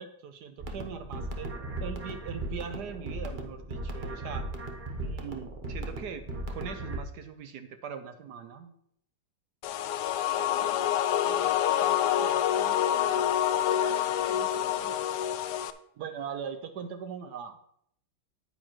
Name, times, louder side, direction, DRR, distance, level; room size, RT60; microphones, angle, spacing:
voice 1, 0.0-1.5 1.8-4.5 5.0-8.7 16.0-17.6, right 7 dB, 70° right, 9 dB, 1.1 m, -40 dB
sound 1, 0.6-7.0, right 1 dB, 40° right, 0.7 m, -37 dB
sound 2, 9.6-15.7, left 11 dB, 75° left, 1.0 m, -27 dB
voice 2, 10.2-15.0, right 4 dB, 85° right, -2 dB, 2.2 m, -47 dB
9.6 x 9.4 x 3.0 m, 0.70 s
omnidirectional pair, 2.2 m